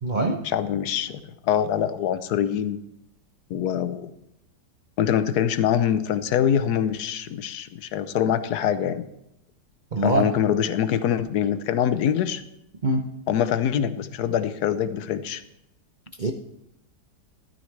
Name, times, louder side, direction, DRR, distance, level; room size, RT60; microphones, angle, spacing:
voice 1, 0.0-0.4 9.9-10.3 12.8-13.1 16.2-16.3, right 2 dB, 55° right, 4 dB, 0.5 m, -23 dB
voice 2, 0.5-2.8 3.5-4.1 5.0-9.1 10.0-12.4 13.3-15.4, left 9 dB, 75° left, 13 dB, 1.2 m, -24 dB
13.5 x 12.5 x 3.3 m, 0.83 s
omnidirectional pair, 1.8 m